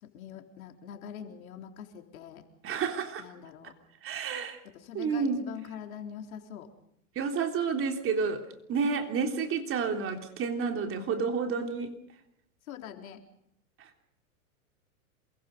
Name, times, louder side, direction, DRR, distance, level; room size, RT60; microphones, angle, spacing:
voice 1, 0.0-2.5 3.2-3.7 4.6-6.7 12.7-13.2, left 8 dB, 65° left, 4 dB, 3.8 m, -44 dB
voice 2, 2.6-3.3 4.0-4.6 4.9-5.4 7.1-11.9 13.8-13.9, right 5 dB, 30° right, 4 dB, 3.5 m, -30 dB
27.5 x 23.0 x 5.4 m, 0.75 s
hypercardioid pair, 115°, 44 cm